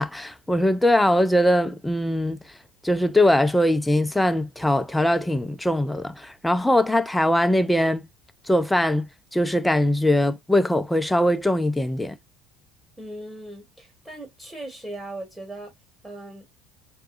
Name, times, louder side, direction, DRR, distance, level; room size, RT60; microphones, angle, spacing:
voice 1, 0.0-2.4 2.8-8.1 8.5-12.2, left 1 dB, 5° left, 0.6 m, -21 dB
voice 2, 13.0-15.7 16.0-16.4, right 1 dB, 10° right, 1.5 m, -38 dB
4.7 x 2.3 x 2.3 m
figure-of-eight pair, 60°, 0 cm